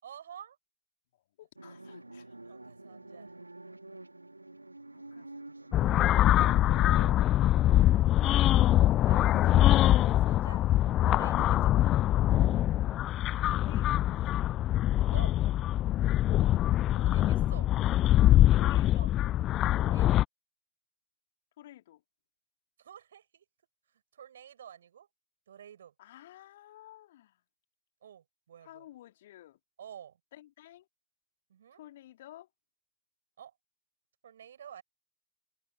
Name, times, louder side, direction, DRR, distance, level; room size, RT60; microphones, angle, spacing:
voice 1, 0.0-0.6 2.4-3.4 9.0-9.6 9.9-10.6 11.1-12.1 15.1-15.3 16.9-17.7 18.6-19.1 19.8-20.2 22.8-23.4 24.1-25.1 25.5-25.9 28.0-28.9 29.8-30.2 31.5-31.8 33.4-33.5 34.2-34.8, right 9 dB, 65° right, 7.7 m, -49 dB
voice 2, 1.1-2.4 4.9-5.8 6.7-7.3 9.4-9.6 13.4-14.5 18.5-19.1 21.6-22.0 26.0-27.4 28.6-29.6 30.3-30.9 31.7-32.5, left 13 dB, 55° left, 2.9 m, -52 dB
sound 1, 1.6-7.1, right 2 dB, 85° right, 4.2 m, -48 dB
sound 2, 5.7-20.2, left 13 dB, 35° left, 0.4 m, -24 dB
figure-of-eight pair, 90°, 0 cm